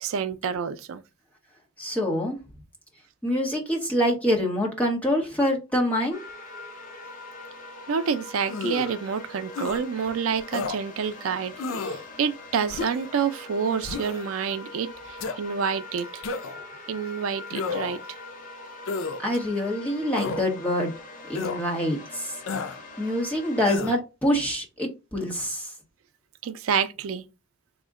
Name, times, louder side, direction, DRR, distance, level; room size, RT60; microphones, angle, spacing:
voice 1, 0.0-1.0 7.9-16.2 16.9-18.2 26.4-27.3, right 6 dB, 85° right, 0.4 m, -28 dB
voice 2, 1.8-2.4 3.2-6.2 19.2-20.9 21.3-22.4 22.7-25.7, equal, 5° left, 0.9 m, -26 dB
sound 1, 6.1-23.8, left 2 dB, 40° left, 0.7 m, -43 dB
sound 2, 8.5-9.0 9.5-9.8 10.5-10.8 11.6-12.0 12.7-13.1 13.8-14.2 15.2-15.4 16.2-16.6 17.5-18.0 18.9-19.2 20.2-20.4 21.4-21.6 22.5-22.8 23.7-24.0, left 4 dB, 75° left, 0.5 m, -31 dB
3.6 x 2.1 x 3.5 m
head